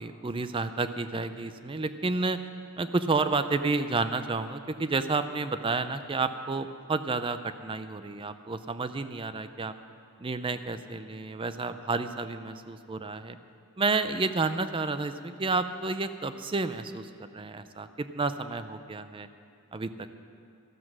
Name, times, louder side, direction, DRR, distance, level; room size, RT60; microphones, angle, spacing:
voice 1, 0.0-2.4 2.8-9.7 10.2-13.4 13.8-19.3 19.7-20.1, right 3 dB, 25° right, 11 dB, 0.4 m, -30 dB
13.5 x 12.5 x 6.1 m, 2.4 s
head